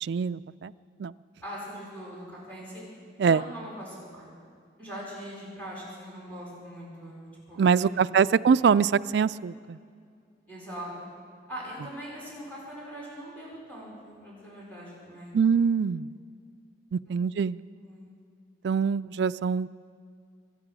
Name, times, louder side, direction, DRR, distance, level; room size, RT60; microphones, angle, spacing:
voice 1, 0.0-0.7 1.0-1.1 3.2-3.4 7.6-9.8 15.3-16.1 16.9-17.6 18.6-19.7, right 6 dB, 70° right, 14 dB, 0.3 m, -24 dB
voice 2, 1.4-2.8 3.2-4.3 4.8-8.0 10.5-10.9 11.5-15.4 17.0-17.2 17.7-18.1, equal, 10° left, -6 dB, 5.2 m, -41 dB
24.0 x 9.6 x 6.2 m, 2.3 s
head